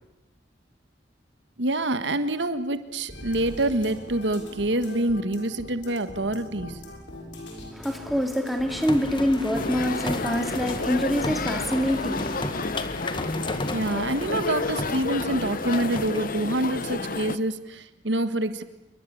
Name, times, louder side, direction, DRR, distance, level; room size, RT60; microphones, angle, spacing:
voice 1, 1.6-6.8 13.7-18.6, right 1 dB, 75° right, 1.6 m, -26 dB
sound 1, 3.1-11.1, left 1 dB, 75° left, 7.3 m, -42 dB
voice 2, 7.7-12.6, equal, ahead, 2.8 m, -26 dB
sound 2, 8.7-16.5, left 2 dB, 25° left, 1.8 m, -35 dB
sound 3, 9.5-17.4, left 3 dB, 50° left, 1.1 m, -30 dB
28.0 x 23.0 x 8.6 m
head